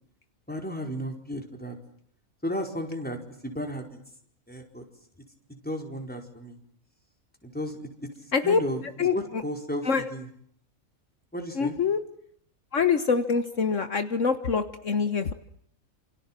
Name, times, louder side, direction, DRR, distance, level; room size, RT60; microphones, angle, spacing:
voice 1, 0.5-1.7 2.4-3.2 3.4-4.0 4.5-4.8 5.6-6.6 7.4-7.9 8.4-8.8 9.1-10.3 11.3-11.7, equal, 5° left, 3 dB, 4.7 m, -33 dB
voice 2, 9.0-9.4 9.8-10.1 11.5-12.0 12.7-15.3, left 5 dB, 65° left, 10 dB, 1.7 m, -25 dB
28.0 x 28.0 x 7.6 m, 0.68 s
omnidirectional pair, 1.4 m